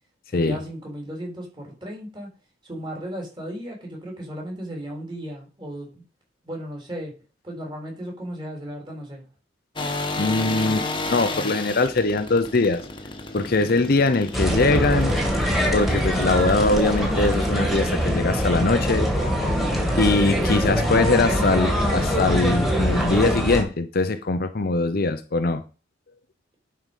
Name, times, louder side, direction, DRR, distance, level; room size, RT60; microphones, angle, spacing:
voice 1, 0.3-2.3 2.6-5.9 6.4-7.1 7.4-9.3, equal, 25° right, 3.8 m, -35 dB
sound 1, 9.8-17.4, left 2 dB, 25° left, 1.3 m, -33 dB
voice 2, 10.2-12.8 13.3-15.2 15.4-19.1 20.0-25.6, left 3 dB, 45° left, 0.6 m, -22 dB
sound 2, 14.3-23.6, equal, ahead, 2.3 m, -23 dB
11.0 x 4.8 x 5.4 m
head